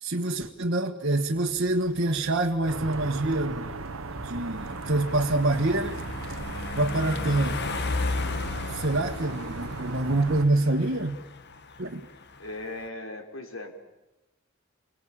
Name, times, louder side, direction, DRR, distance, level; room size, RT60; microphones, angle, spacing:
voice 1, 0.0-3.7 4.2-6.0 6.7-7.6 8.7-11.2 11.8-12.0, right 2 dB, 55° right, -1 dB, 1.6 m, -26 dB
sound 1, 1.2-12.9, left 3 dB, 55° left, 1.5 m, -36 dB
sound 2, 2.7-10.5, right 3 dB, 75° right, 1.1 m, -37 dB
voice 2, 12.4-13.7, left 2 dB, 80° left, 4 dB, 4.3 m, -38 dB
28.5 x 23.0 x 8.8 m, 1.0 s
head